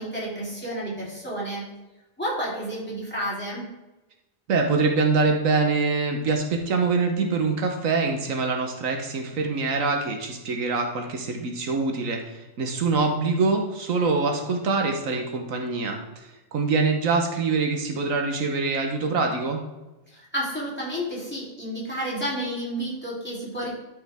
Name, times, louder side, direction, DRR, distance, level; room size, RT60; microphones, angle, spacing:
voice 1, 0.0-1.7 2.2-3.7 20.1-23.7, equal, 10° left, -7 dB, 3.2 m, -31 dB
voice 2, 4.5-19.6, right 4 dB, 80° right, 3 dB, 1.4 m, -24 dB
12.5 x 5.2 x 3.6 m, 1.0 s
omnidirectional pair, 1.4 m